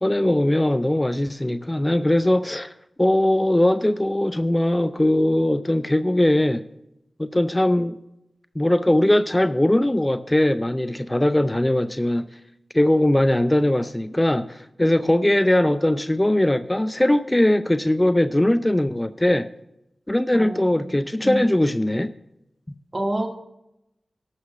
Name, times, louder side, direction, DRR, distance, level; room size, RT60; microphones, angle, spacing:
voice 1, 0.0-2.7 3.0-6.6 7.2-8.0 8.6-12.3 12.7-19.5 20.1-22.1, left 1 dB, 20° left, 0.4 m, -20 dB
voice 2, 20.3-20.9 21.2-21.4 22.9-23.3, right 1 dB, 40° right, 1.7 m, -27 dB
12.5 x 5.7 x 6.5 m
cardioid pair, 40°, 0 cm